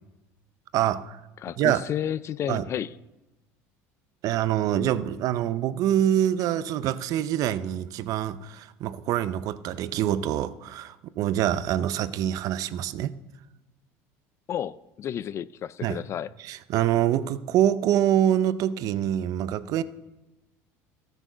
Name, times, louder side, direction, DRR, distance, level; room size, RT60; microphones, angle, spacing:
voice 1, 0.7-1.2 1.6-1.8 2.5-2.7 4.2-13.1 15.8-16.0 16.4-19.8, right 11 dB, 55° right, 0.6 m, -25 dB
voice 2, 1.4-2.9 14.5-16.3, left 10 dB, 40° left, 0.4 m, -31 dB
13.5 x 8.1 x 6.1 m
supercardioid pair, 110°, 7 cm